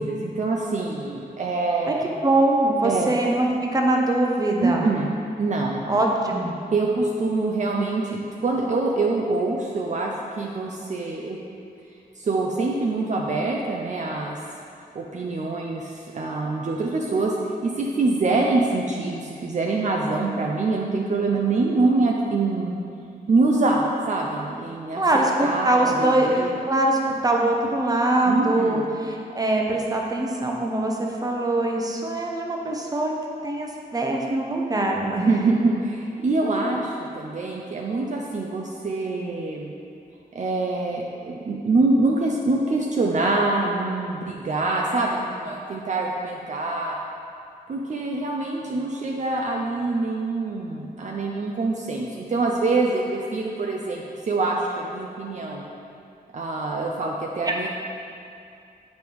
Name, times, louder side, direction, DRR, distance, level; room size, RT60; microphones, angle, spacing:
voice 1, 0.0-2.2 2.8-3.1 4.6-5.1 5.4-5.8 6.7-11.4 12.2-14.4 14.9-17.4 17.6-22.8 23.3-26.5 28.3-28.9 35.2-39.7 40.3-47.0 47.7-55.6 56.3-57.7, right 3 dB, 45° right, -1 dB, 0.6 m, -25 dB
voice 2, 2.2-4.9 5.9-6.5 25.0-33.1 33.4-35.3 36.4-36.6 57.4-57.7, right 1 dB, 20° right, 0 dB, 0.8 m, -23 dB
8.9 x 5.2 x 4.6 m, 2.5 s
wide cardioid pair, 165°, 17 cm